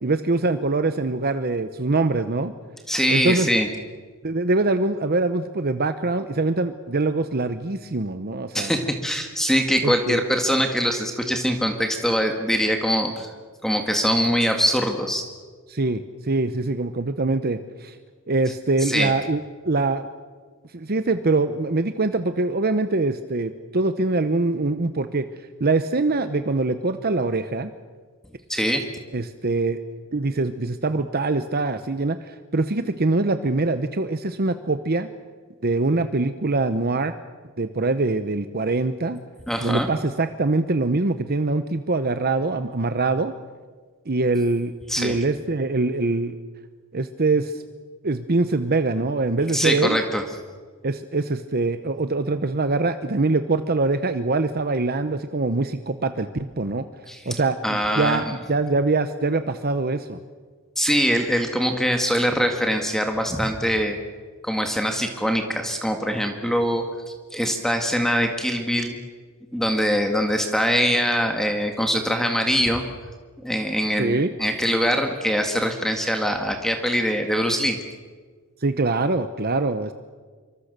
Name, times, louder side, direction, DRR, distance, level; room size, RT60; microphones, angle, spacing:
voice 1, 0.0-2.5 3.1-3.5 4.2-8.8 9.8-10.2 15.7-18.0 18.3-20.1 20.7-25.2 25.6-27.7 29.1-29.8 30.1-35.1 35.6-37.1 37.6-39.2 39.6-43.3 44.1-46.3 46.9-47.6 48.0-50.0 50.8-56.9 57.3-60.2 74.0-74.3 78.6-79.9, right 3 dB, 45° right, 10 dB, 0.9 m, -23 dB
voice 2, 2.9-3.7 8.5-13.3 13.6-15.2 18.8-19.1 28.5-28.8 39.5-39.9 44.9-45.2 49.5-50.2 57.1-57.2 57.6-58.2 60.8-64.0 64.4-69.0 69.5-72.8 73.4-77.8, equal, ahead, 4 dB, 1.8 m, -23 dB
27.0 x 24.0 x 6.8 m, 1.5 s
head